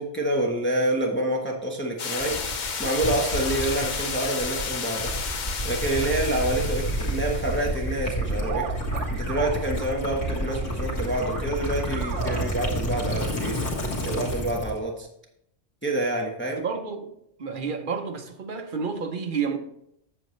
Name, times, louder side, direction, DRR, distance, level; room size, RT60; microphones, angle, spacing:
voice 1, 0.0-5.1 5.6-8.7 9.1-13.6 14.0-15.1 15.8-16.6, right 1 dB, 10° left, 0.9 m, -27 dB
sound 1, 2.0-7.9, left 5 dB, 45° left, 0.7 m, -32 dB
Gurgling / Liquid, 2.2-14.8, right 1 dB, 85° left, 2.0 m, -30 dB
sound 2, 8.4-9.9 10.3-10.5 11.0-12.5, right 7 dB, 80° right, 1.2 m, -36 dB
voice 2, 16.6-17.1 17.4-19.6, right 5 dB, 50° right, 0.8 m, -30 dB
7.8 x 7.5 x 3.1 m
omnidirectional pair, 1.2 m